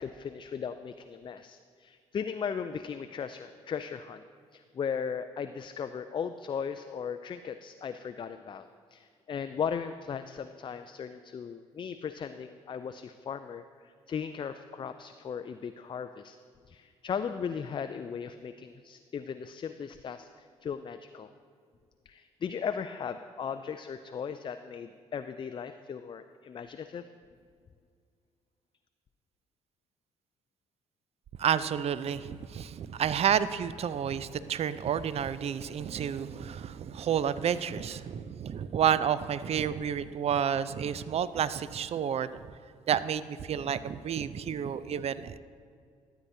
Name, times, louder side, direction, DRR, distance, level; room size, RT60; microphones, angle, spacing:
voice 1, 0.0-4.2 4.5-8.7 8.9-16.4 16.7-21.3 22.1-27.1, left 7 dB, 30° left, 9 dB, 0.3 m, -37 dB
voice 2, 31.4-42.5 42.9-45.4, right 8 dB, 40° right, 15 dB, 0.4 m, -30 dB
12.5 x 8.0 x 2.8 m, 2.2 s
hypercardioid pair, 45°, 16 cm